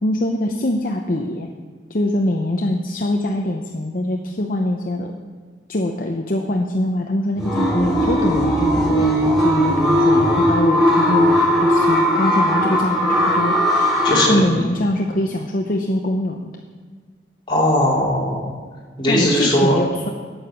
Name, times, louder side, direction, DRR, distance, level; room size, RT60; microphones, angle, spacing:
voice 1, 0.0-1.5 1.9-5.1 5.7-13.6 14.3-16.5 19.1-20.1, left 1 dB, 50° left, 2 dB, 0.7 m, -23 dB
sound 1, 7.4-14.3, equal, ahead, 2.8 m, -18 dB
voice 2, 14.0-14.6 17.5-18.5 19.0-19.7, equal, 25° left, -6 dB, 2.8 m, -18 dB
8.8 x 8.7 x 6.9 m, 1.5 s
head